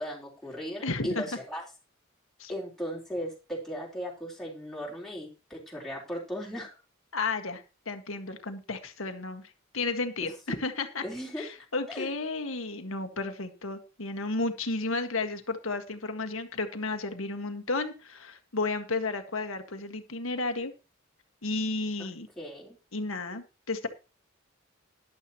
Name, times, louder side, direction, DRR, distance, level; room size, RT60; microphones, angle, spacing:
voice 1, 0.0-1.6 2.5-6.7 10.2-10.3 11.0-11.5 11.9-12.1 22.0-22.8, equal, ahead, -4 dB, 3.8 m, -37 dB
voice 2, 0.8-1.3 2.4-2.5 7.1-11.0 11.4-20.7 21.4-22.3 22.9-23.9, left 3 dB, 70° left, 7 dB, 1.7 m, -33 dB
13.0 x 11.5 x 3.0 m, 0.31 s
head